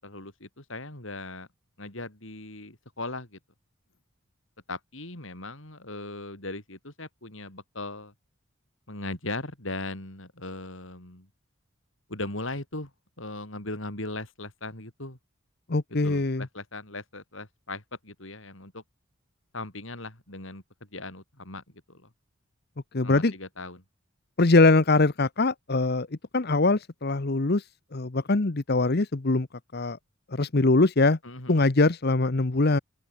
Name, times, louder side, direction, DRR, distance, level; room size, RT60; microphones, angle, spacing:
voice 1, 0.0-1.5 1.8-3.4 4.7-8.1 8.9-11.3 12.1-12.9 13.2-15.2 16.0-18.8 19.5-20.6 20.9-21.6 21.9-22.1 23.0-23.8 31.2-31.6, left 2 dB, 65° left, 5.1 m, -38 dB
voice 2, 15.7-16.5 22.9-23.3 24.4-26.1 26.3-27.6 27.9-29.5 29.7-30.0 30.3-31.2 31.5-32.8, left 3 dB, 50° left, 0.9 m, -22 dB
open air
head